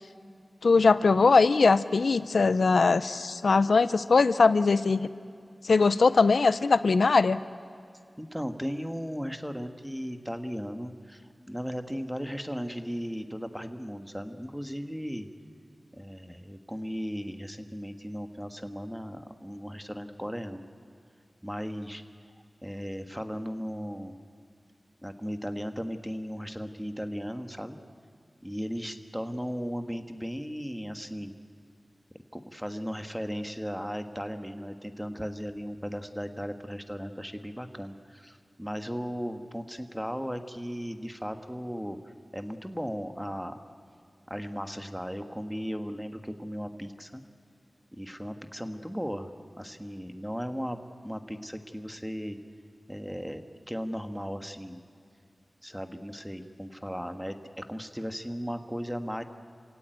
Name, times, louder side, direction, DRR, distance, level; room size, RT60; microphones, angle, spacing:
voice 1, 0.6-5.1 5.6-7.4, left 4 dB, 85° left, 14 dB, 0.6 m, -21 dB
voice 2, 8.2-15.3 15.9-20.7 21.4-22.0 22.6-24.2 25.0-27.8 28.4-31.3 32.3-43.6 44.3-47.2 47.9-52.4 52.9-53.4 53.7-54.8 55.6-59.2, equal, ahead, 7 dB, 1.5 m, -36 dB
27.0 x 17.0 x 9.3 m, 2.3 s
wide cardioid pair, 80°, 0 cm